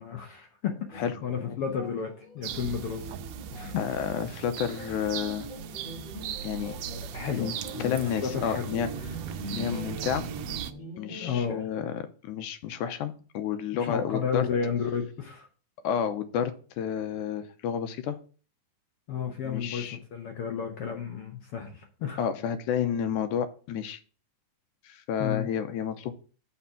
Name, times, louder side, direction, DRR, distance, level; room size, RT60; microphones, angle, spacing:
voice 1, 0.0-3.1 3.5-3.9 4.9-5.0 6.9-7.5 7.7-8.6 11.1-11.7 13.7-15.5 19.1-22.3 25.2-25.5, left 7 dB, 60° left, 3 dB, 1.6 m, -32 dB
sound 1, 0.9-11.3, equal, 25° left, 1.1 m, -43 dB
sound 2, 2.4-10.7, right 9 dB, 80° right, 1.9 m, -38 dB
voice 2, 3.8-5.5 6.4-6.8 7.1-7.5 7.8-8.9 9.5-10.3 11.0-14.4 15.8-18.2 19.4-20.0 22.2-24.0 24.9-26.1, left 8 dB, 80° left, 9 dB, 2.3 m, -30 dB
7.0 x 5.2 x 7.0 m, 0.39 s
omnidirectional pair, 3.6 m